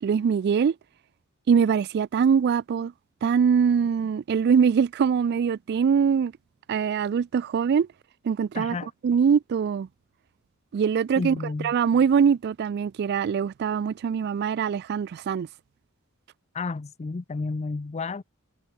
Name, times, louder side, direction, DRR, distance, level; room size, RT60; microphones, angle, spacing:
voice 1, 0.0-0.8 1.5-2.9 3.2-6.3 6.7-7.9 8.2-8.8 9.0-9.9 10.7-11.4 11.6-15.5, right 6 dB, 50° right, 0.3 m, -23 dB
voice 2, 8.6-8.9 11.2-11.7 16.5-18.2, left 3 dB, 30° left, 0.5 m, -31 dB
head